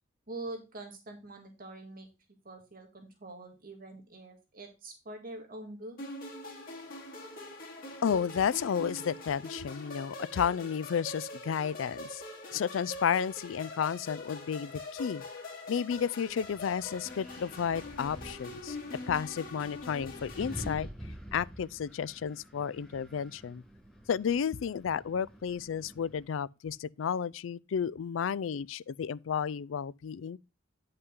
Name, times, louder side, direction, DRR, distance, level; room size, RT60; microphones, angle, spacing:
voice 1, 0.3-2.1 2.4-6.0, right 2 dB, 50° right, 2.0 m, -44 dB
sound 1, 6.0-20.7, left 2 dB, 50° left, 2.7 m, -44 dB
voice 2, 8.0-12.2 12.5-15.2 15.7-18.8 19.1-20.9 21.3-23.6 24.1-30.4, left 7 dB, 85° left, 0.4 m, -32 dB
Wind, 16.3-26.2, right 1 dB, ahead, 4.0 m, -48 dB
9.5 x 5.5 x 3.7 m
head